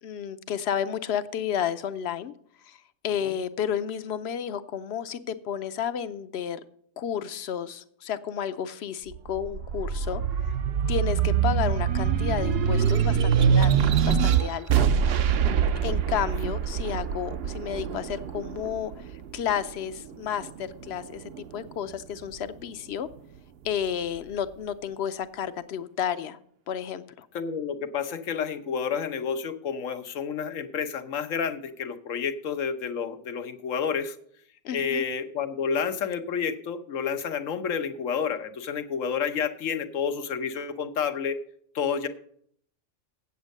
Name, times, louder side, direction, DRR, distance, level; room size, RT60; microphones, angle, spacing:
voice 1, 0.0-2.3 2.7-2.8 3.0-6.6 7.0-10.2 10.5-10.6 10.9-14.9 15.8-19.0 19.3-23.1 23.6-26.4 26.7-27.3 34.6-35.0, left 9 dB, 65° left, 13 dB, 0.8 m, -31 dB
sound 1, 9.1-19.9 20.4-21.6, right 7 dB, 60° right, 0.7 m, -24 dB
voice 2, 27.3-34.2 34.7-41.4 41.7-42.1, left 6 dB, 85° left, 9 dB, 1.2 m, -30 dB
8.2 x 8.0 x 6.4 m, 0.65 s
omnidirectional pair, 1.3 m